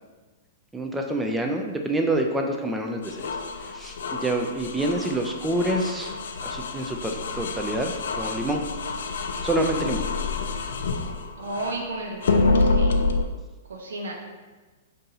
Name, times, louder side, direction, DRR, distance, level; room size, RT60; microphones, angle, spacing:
voice 1, 0.7-3.3 3.7-6.1 6.4-8.6 9.4-10.1, right 1 dB, 10° right, 2 dB, 0.3 m, -27 dB
sound 1, 3.0-11.8 12.2-13.2, left 3 dB, 80° left, 0.4 m, -27 dB
voice 2, 11.4-13.0 13.7-14.1, right 2 dB, 90° right, 1 dB, 0.8 m, -33 dB
5.3 x 2.6 x 2.8 m, 1.3 s
hypercardioid pair, 135°, 0 cm